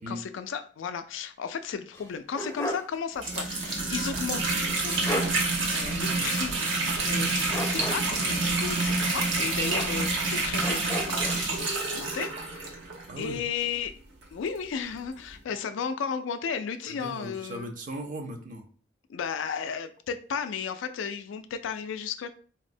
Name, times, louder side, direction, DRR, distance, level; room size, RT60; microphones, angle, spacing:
voice 1, 0.0-5.3 5.7-6.5 7.0-12.6 13.2-13.9 14.3-17.7 19.1-22.3, left 6 dB, 90° left, 9 dB, 0.3 m, -34 dB
sound 1, 1.9-3.0 3.3-3.4 4.7-4.8 5.0-5.4 7.5-8.2 9.7-10.3 10.6-11.4, left 1 dB, 15° left, 0.4 m, -34 dB
sound 2, 3.1-13.2 13.9-14.0 14.2-14.3 15.3-15.4, right 3 dB, 80° right, 0.8 m, -28 dB
voice 2, 12.8-13.4 16.9-18.7, right 1 dB, 45° right, 4 dB, 0.5 m, -38 dB
4.2 x 2.0 x 2.5 m, 0.43 s
head